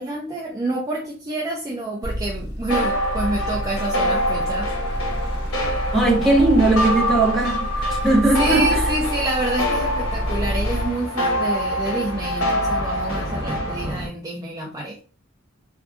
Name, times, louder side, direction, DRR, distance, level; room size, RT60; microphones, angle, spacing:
voice 1, 0.0-4.7 8.0-8.1 8.4-15.0, right 1 dB, 15° right, 0.4 m, -28 dB
sound 1, 2.0-10.9, equal, 55° left, 1.0 m, -28 dB
sound 2, 2.7-14.0, equal, 90° left, 0.8 m, -25 dB
Thunder, 4.0-14.1, equal, 70° right, 1.1 m, -36 dB
voice 2, 5.9-8.9, right 2 dB, ahead, 0.7 m, -19 dB
3.6 x 2.2 x 2.4 m
head